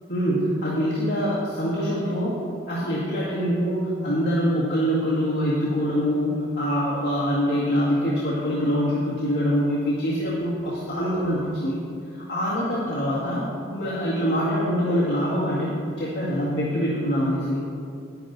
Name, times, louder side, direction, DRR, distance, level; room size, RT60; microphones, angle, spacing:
voice 1, 0.1-2.3 2.7-11.8 12.1-13.4 13.7-17.6, equal, 55° left, -8 dB, 1.9 m, -24 dB
10.5 x 10.0 x 4.0 m, 2.5 s
head